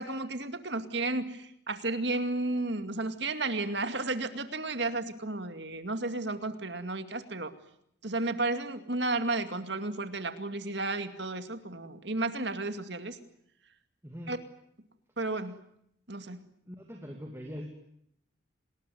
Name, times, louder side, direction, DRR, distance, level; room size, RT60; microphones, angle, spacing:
voice 1, 0.0-7.5 8.0-13.2 14.3-14.4 15.2-15.6 16.1-16.4, right 2 dB, 60° right, 9 dB, 2.4 m, -33 dB
voice 2, 14.0-14.3 16.6-17.7, equal, 15° right, 2 dB, 2.6 m, -42 dB
28.0 x 20.0 x 9.4 m, 0.74 s
head